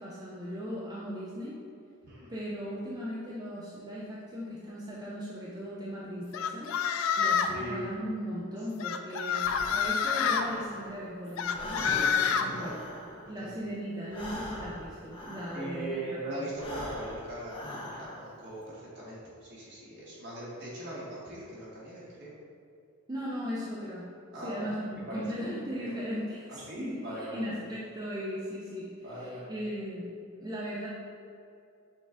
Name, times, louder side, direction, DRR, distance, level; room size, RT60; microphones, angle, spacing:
voice 1, 0.0-1.5 2.3-6.7 7.2-12.8 13.3-16.0 16.4-16.5 23.1-24.1 24.4-30.1 30.4-30.9, equal, 20° right, -7 dB, 0.5 m, -37 dB
sound 1, 6.3-7.6 8.8-10.4 11.4-12.5, left 7 dB, 75° left, 0.3 m, -27 dB
voice 2, 7.4-7.9 11.7-12.8 13.4-13.6 15.5-22.4 24.3-24.7 25.1-25.4 25.8-26.0 26.7-27.6 29.0-29.6, right 1 dB, 55° right, -7 dB, 1.4 m, -40 dB
Breathing, 9.3-11.1 11.4-16.0 16.5-18.4, left 1 dB, 25° left, 0.6 m, -43 dB
6.4 x 2.4 x 3.4 m, 2.4 s
head